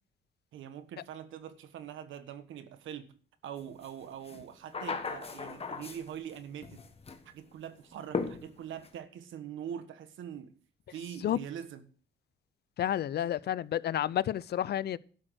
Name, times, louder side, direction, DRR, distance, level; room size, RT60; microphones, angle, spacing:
voice 1, 0.5-3.1 3.4-6.8 7.2-10.5 10.9-11.8, right 9 dB, 75° right, 1.3 m, -43 dB
sound 1, 3.8-3.9 4.2-6.3 6.6-7.2 8.1-8.9, left 4 dB, 30° left, 1.3 m, -37 dB
voice 2, 12.8-15.0, left 11 dB, 55° left, 0.5 m, -30 dB
12.0 x 6.2 x 6.3 m
cardioid pair, 90°, 20 cm